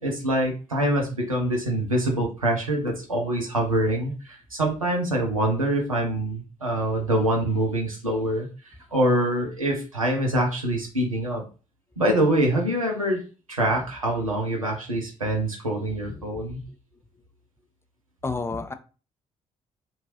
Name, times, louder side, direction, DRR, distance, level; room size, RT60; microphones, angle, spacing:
voice 1, 0.0-11.4 12.0-16.6, right 1 dB, 90° right, 0.5 m, -25 dB
voice 2, 15.9-16.8 18.2-18.7, left 3 dB, 15° left, 0.4 m, -33 dB
2.7 x 2.2 x 2.9 m
figure-of-eight pair, 40°, 17 cm